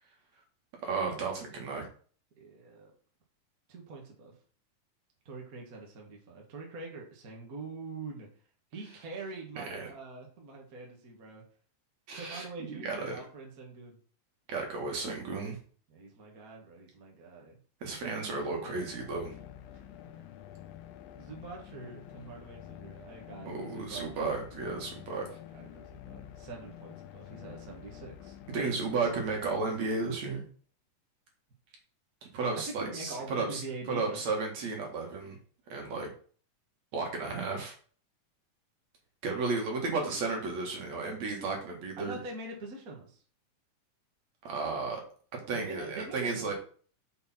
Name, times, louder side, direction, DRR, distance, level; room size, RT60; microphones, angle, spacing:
voice 1, 0.8-1.9 9.6-9.9 12.1-13.2 14.5-15.6 17.8-19.3 23.4-25.3 28.5-30.4 32.3-33.6 33.9-35.4 35.7-36.1 36.9-37.7 39.2-42.2 44.4-45.0 45.3-46.5, right 3 dB, 55° right, 1 dB, 2.9 m, -33 dB
voice 2, 2.4-2.9 3.7-4.3 5.3-8.3 8.7-11.4 12.1-14.0 15.9-17.6 20.1-20.2 21.2-24.2 25.5-28.8 32.8-34.2 42.0-43.2 45.5-46.5, right 3 dB, 35° right, 0 dB, 1.6 m, -44 dB
sound 1, 18.3-30.2, left 11 dB, 85° left, 2.5 m, -49 dB
6.8 x 6.7 x 4.3 m, 0.42 s
omnidirectional pair, 3.9 m